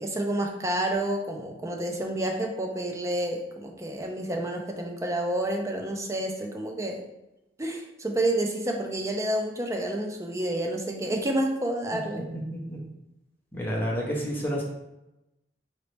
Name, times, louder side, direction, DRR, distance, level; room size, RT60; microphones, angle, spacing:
voice 1, 0.0-7.0 7.6-12.3, right 1 dB, 15° right, 2 dB, 0.5 m, -29 dB
voice 2, 12.5-12.8 13.5-14.6, equal, 10° left, -3 dB, 0.9 m, -29 dB
3.9 x 3.0 x 3.2 m, 0.94 s
head